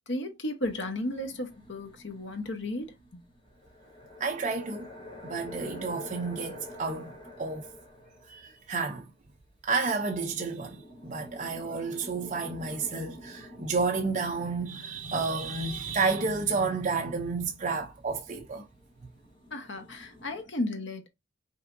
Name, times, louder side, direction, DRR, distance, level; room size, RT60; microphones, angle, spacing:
voice 1, 0.1-3.2 19.5-21.1, left 1 dB, 60° left, 1.2 m, -34 dB
sound 1, 0.6-9.0 9.8-9.9 10.1-20.4, left 1 dB, 25° left, 1.7 m, -49 dB
voice 2, 4.2-4.9 5.2-7.1 7.4-7.7 8.3-9.1 9.6-18.7, right 4 dB, 40° right, 0.7 m, -31 dB
5.5 x 3.6 x 2.6 m
head